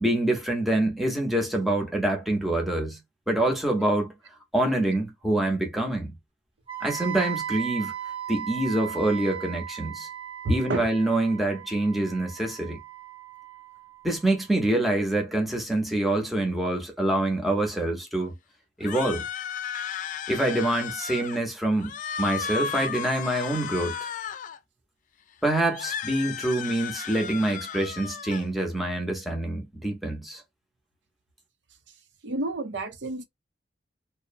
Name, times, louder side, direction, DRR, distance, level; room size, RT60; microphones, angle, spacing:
voice 1, 0.0-3.0 3.3-4.1 4.5-6.1 6.8-7.9 8.3-10.1 10.5-12.8 14.0-18.3 18.8-19.2 20.3-21.9 22.2-24.1 25.4-30.4, right 1 dB, ahead, 0.7 m, -26 dB
Wind instrument woodwind instrument, 6.7-14.6, right 9 dB, 30° right, 0.7 m, -37 dB
voice 2, 10.4-10.9 32.2-33.2, right 1 dB, 75° right, 0.6 m, -29 dB
sound 1, 18.8-21.4 21.8-24.6 25.7-28.4, left 7 dB, 45° left, 0.3 m, -34 dB
2.6 x 2.0 x 2.5 m
head